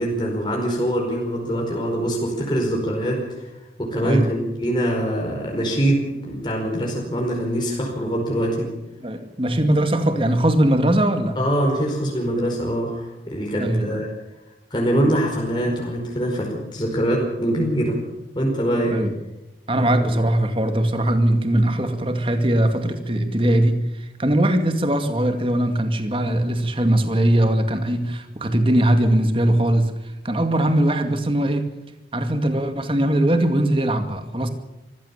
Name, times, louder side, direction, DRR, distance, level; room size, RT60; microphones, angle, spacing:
voice 1, 0.0-3.5 3.8-8.7 11.3-14.1 14.7-18.0 18.3-19.0 20.0-20.1, right 1 dB, 25° left, -1 dB, 5.1 m, -23 dB
voice 2, 9.0-11.4 13.5-14.0 18.8-19.2 19.7-29.9 30.2-31.7 32.1-34.5, right 1 dB, 30° right, 7 dB, 2.2 m, -20 dB
24.0 x 16.0 x 7.3 m, 0.94 s
head